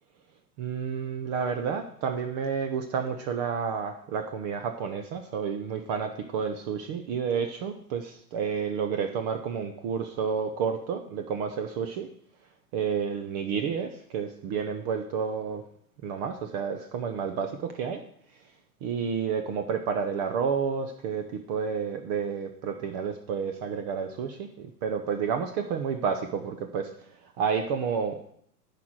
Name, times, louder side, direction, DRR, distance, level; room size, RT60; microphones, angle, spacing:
voice 1, 0.6-12.1 12.7-15.6 16.0-18.0 18.8-26.9 27.2-28.3, right 6 dB, 25° right, 7 dB, 0.6 m, -30 dB
10.5 x 4.8 x 7.4 m, 0.67 s
hypercardioid pair, 140°, 49 cm